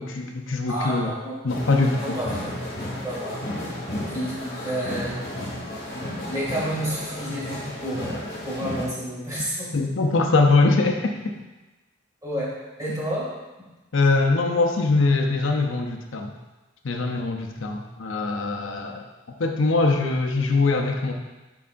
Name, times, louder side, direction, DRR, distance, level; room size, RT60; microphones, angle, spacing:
voice 1, 0.0-1.1 1.4-2.2 9.7-11.1 13.9-16.3 16.8-19.0 19.4-21.1, left 3 dB, 70° left, 2 dB, 0.7 m, -22 dB
voice 2, 0.7-1.4 2.0-2.5 3.0-3.4 4.1-5.2 5.9-9.7 12.2-12.5 12.8-13.3, right 1 dB, 15° right, -7 dB, 2.2 m, -30 dB
sound 1, 1.5-8.9, left 1 dB, 45° left, 1.9 m, -33 dB
11.0 x 4.7 x 2.5 m, 1.1 s
head